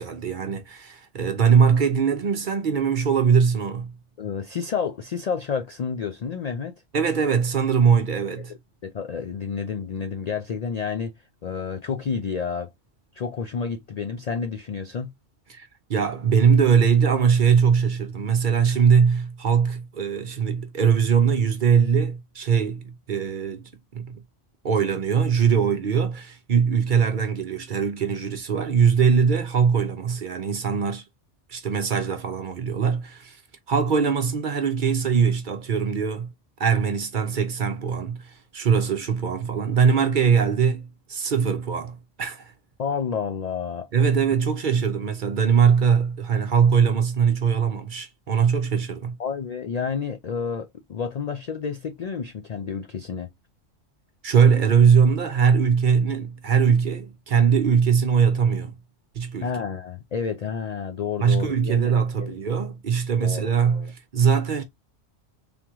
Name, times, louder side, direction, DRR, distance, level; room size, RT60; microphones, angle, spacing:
voice 1, 0.0-3.9 6.9-8.5 15.5-23.6 23.9-24.2 24.6-31.0 31.5-33.4 33.7-36.3 36.6-42.5 43.9-49.2 54.2-58.7 59.1-59.5 61.2-64.6, right 6 dB, 50° right, 0.7 m, -21 dB
voice 2, 4.2-6.8 8.5-11.1 11.4-12.7 13.1-15.1 42.8-43.9 49.2-53.3 59.4-61.9 62.2-62.4 63.2-63.9, left 6 dB, 80° left, 0.3 m, -30 dB
3.5 x 3.0 x 3.5 m
omnidirectional pair, 1.3 m